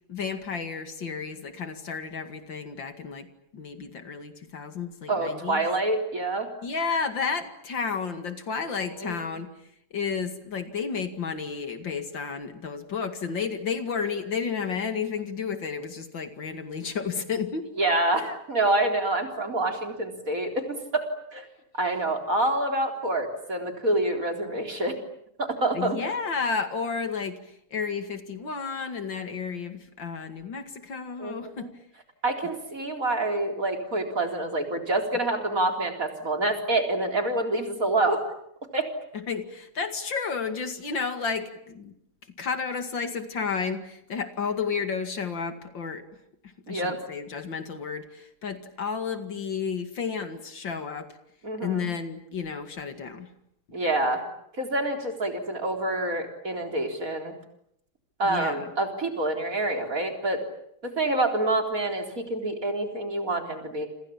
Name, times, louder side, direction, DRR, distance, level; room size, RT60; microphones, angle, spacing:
voice 1, 0.1-3.3 3.5-5.7 6.6-9.5 9.9-17.7 25.7-27.4 27.7-31.7 39.1-41.9 42.4-46.0 46.7-51.1 51.6-53.3 58.2-58.7, left 5 dB, 60° left, 8 dB, 2.8 m, -32 dB
voice 2, 5.1-6.5 8.6-9.2 17.8-21.5 21.7-25.0 25.4-26.0 31.2-31.7 32.2-38.2 38.7-38.9 46.7-47.0 51.4-51.8 53.7-54.2 54.6-57.3 58.2-60.4 60.8-63.9, right 2 dB, 40° right, 4 dB, 4.3 m, -27 dB
29.0 x 26.5 x 7.3 m, 0.72 s
omnidirectional pair, 2.3 m